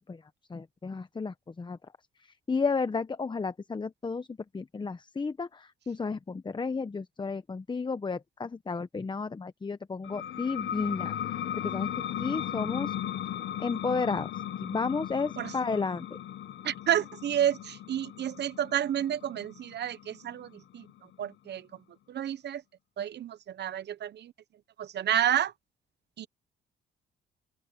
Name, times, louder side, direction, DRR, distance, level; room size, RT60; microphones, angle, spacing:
voice 1, 0.5-1.8 2.5-4.3 4.5-12.9 13.6-14.3 14.6-16.1, left 4 dB, 25° left, 0.9 m, -32 dB
sound 1, 10.0-21.3, left 10 dB, 70° left, 1.0 m, -37 dB
voice 2, 16.6-20.9 21.2-21.7 22.1-22.6 23.0-24.3 24.8-25.5 26.2-26.3, right 10 dB, 60° right, 0.9 m, -30 dB
cardioid pair, 90°, 20 cm